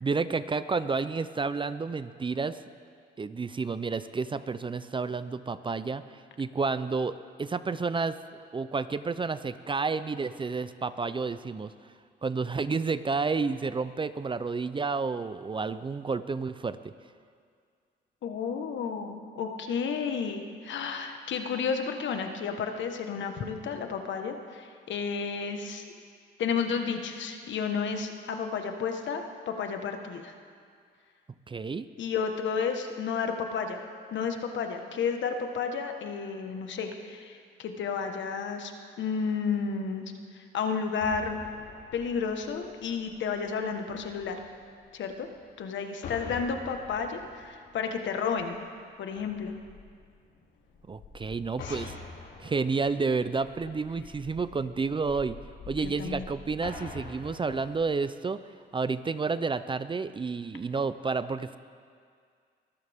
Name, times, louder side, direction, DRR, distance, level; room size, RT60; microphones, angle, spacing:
voice 1, 0.0-2.6 3.2-6.0 6.4-8.2 8.5-11.7 12.2-16.9 31.5-31.8 50.9-52.0 52.4-55.4 55.7-58.4 58.7-61.6, right 4 dB, 25° right, 13 dB, 0.5 m, -30 dB
voice 2, 18.2-25.8 26.4-30.3 32.0-33.8 34.1-38.7 39.0-40.0 40.5-41.4 41.9-44.4 44.9-45.3 45.6-48.6 49.0-49.5 51.6-51.9 55.8-56.3, left 6 dB, 70° left, 5 dB, 1.4 m, -32 dB
sound 1, 41.0-45.6 45.9-57.8, left 4 dB, 85° left, 4.3 m, -46 dB
23.0 x 14.0 x 3.6 m, 2.1 s
cardioid pair, 90°, 20 cm